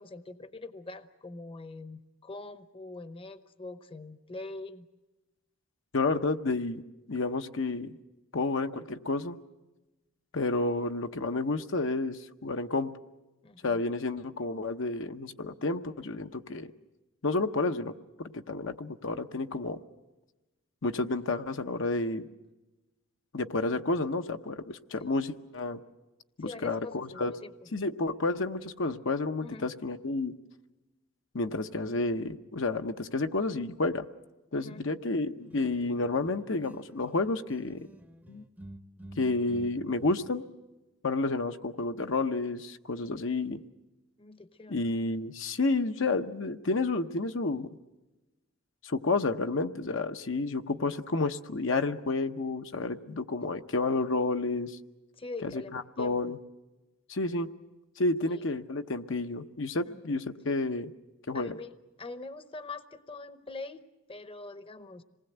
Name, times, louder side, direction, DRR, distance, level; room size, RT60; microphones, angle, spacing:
voice 1, 0.0-4.9 13.4-13.8 25.0-25.1 26.4-27.5 29.4-29.7 34.5-34.8 44.2-44.8 55.2-56.3 58.3-58.4 59.8-60.2 61.3-61.7 62.0-63.8 64.1-65.0, left 3 dB, 25° left, 11 dB, 0.9 m, -43 dB
voice 2, 5.9-6.8 7.1-8.0 8.3-9.4 10.3-12.9 13.6-16.7 17.2-17.9 18.2-19.8 20.8-22.3 23.3-25.8 26.4-27.3 27.7-30.3 31.3-34.1 34.5-37.8 38.3-38.4 39.2-40.4 41.0-43.6 44.7-47.7 48.8-54.8 55.4-55.5 56.0-56.4 57.1-57.5 58.0-60.9 61.3-61.5, left 3 dB, 65° left, 7 dB, 0.8 m, -30 dB
sound 1, 35.4-37.2 37.5-40.3, right 1 dB, 10° right, 0.7 m, -50 dB
26.5 x 20.0 x 7.9 m, 1.1 s
head